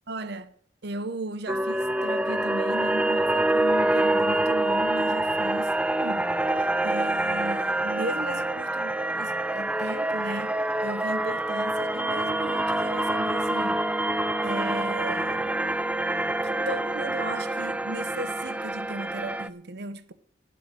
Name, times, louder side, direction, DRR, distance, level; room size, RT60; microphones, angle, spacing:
voice 1, 0.1-0.5 0.8-13.8 14.4-15.5 16.4-20.1, right 2 dB, 60° right, 0.8 m, -36 dB
sound 1, 1.5-19.5, right 1 dB, 5° right, 0.4 m, -26 dB
12.0 x 7.7 x 9.0 m
head